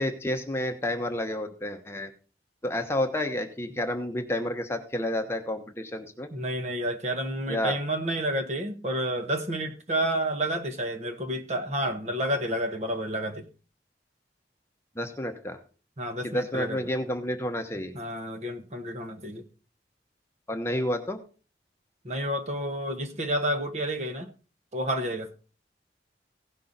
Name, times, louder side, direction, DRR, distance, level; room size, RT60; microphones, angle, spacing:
voice 1, 0.0-2.1 2.6-6.3 7.5-7.8 15.0-15.6 16.2-17.9 20.5-21.2, left 1 dB, 15° left, 0.9 m, -30 dB
voice 2, 6.3-13.5 16.0-16.8 17.9-19.4 22.0-24.3 24.7-25.3, right 1 dB, 40° right, 1.1 m, -30 dB
16.5 x 5.7 x 3.9 m
head